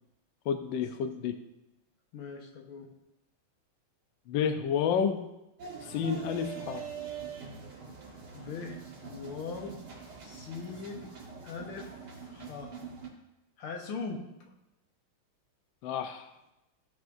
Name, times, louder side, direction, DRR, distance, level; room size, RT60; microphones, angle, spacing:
voice 1, 0.5-1.4 4.3-5.2 5.9-6.8 15.8-16.3, left 7 dB, 70° left, 7 dB, 1.3 m, -30 dB
voice 2, 2.1-2.9 8.3-9.8 10.2-11.1 11.4-11.9 12.3-12.7 13.6-14.3, left 5 dB, 90° left, 1 dB, 2.1 m, -40 dB
sound 1, 5.6-13.1, right 6 dB, 85° right, 2.7 m, -44 dB
15.5 x 6.0 x 2.7 m, 0.92 s
omnidirectional pair, 2.3 m